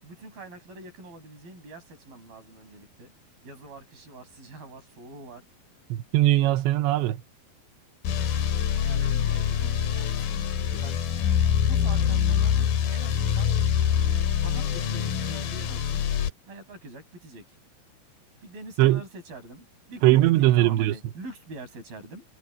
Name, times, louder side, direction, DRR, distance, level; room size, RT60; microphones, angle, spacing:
voice 1, 0.0-3.1 3.4-5.5 8.4-11.0 11.7-12.6 12.9-13.5 14.4-16.1 16.5-17.4 18.4-22.3, right 2 dB, 55° right, 9.6 m, -44 dB
voice 2, 5.9-7.2 18.8-19.0 20.0-21.0, right 15 dB, 85° right, 3.2 m, -20 dB
sound 1, 8.0-16.3, left 9 dB, 60° left, 3.4 m, -25 dB
omnidirectional pair, 5.0 m